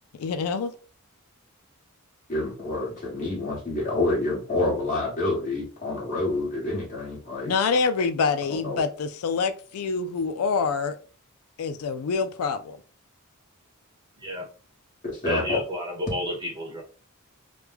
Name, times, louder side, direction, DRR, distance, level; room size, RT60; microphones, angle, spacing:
voice 1, 0.1-0.7 7.4-11.0 11.6-12.8, left 5 dB, 75° left, 0.4 m, -26 dB
voice 2, 2.3-7.5 8.5-8.8 15.0-15.6, left 2 dB, 35° left, 1.5 m, -28 dB
voice 3, 15.2-16.8, equal, 20° right, 1.0 m, -31 dB
3.1 x 2.2 x 3.4 m
head